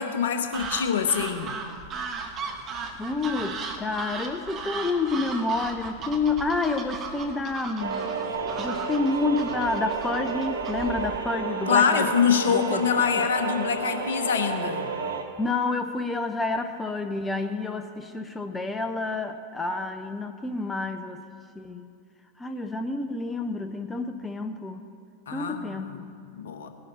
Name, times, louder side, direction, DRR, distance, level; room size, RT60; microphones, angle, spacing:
voice 1, 0.0-1.5 11.7-14.9 25.3-26.1 26.4-26.7, left 7 dB, 60° left, 7 dB, 1.1 m, -25 dB
sound 1, 0.5-11.2, right 4 dB, 30° right, 1.3 m, -37 dB
voice 2, 3.0-8.1 8.6-12.1 12.5-12.8 13.1-13.3 15.4-21.2 21.6-21.8 22.4-24.9 25.3-26.0, left 3 dB, 10° left, 7 dB, 0.7 m, -29 dB
sound 2, 7.8-15.2, right 5 dB, 70° right, 1.2 m, -31 dB
18.5 x 10.5 x 4.2 m, 2.2 s
figure-of-eight pair, 90°, 0 cm